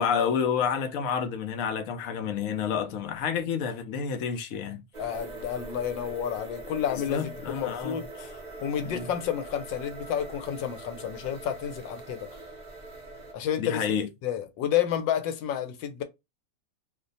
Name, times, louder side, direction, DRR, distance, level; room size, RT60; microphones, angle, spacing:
voice 1, 0.0-4.8 6.9-8.0 8.8-9.1 13.6-14.1, left 7 dB, 65° left, 0.9 m, -29 dB
sound 1, 4.9-13.3, right 2 dB, 40° right, 0.6 m, -42 dB
voice 2, 5.0-12.3 13.3-13.8 14.2-16.0, left 9 dB, 90° left, 1.4 m, -30 dB
3.1 x 2.1 x 3.9 m
omnidirectional pair, 2.0 m